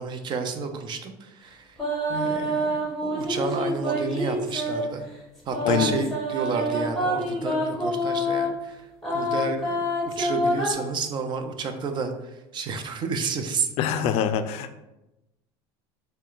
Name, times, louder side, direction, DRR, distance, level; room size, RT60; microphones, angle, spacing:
voice 1, 0.0-1.8 2.1-5.1 5.5-8.8 9.1-12.1 12.5-13.7, right 5 dB, 40° right, 7 dB, 0.5 m, -31 dB
sound 1, 1.8-4.9 5.5-8.6 9.0-10.7, equal, 5° left, 1.4 m, -27 dB
voice 2, 5.6-6.0 13.8-14.8, left 8 dB, 60° left, 10 dB, 0.4 m, -24 dB
4.2 x 2.2 x 3.8 m, 0.96 s
supercardioid pair, 110°, 12 cm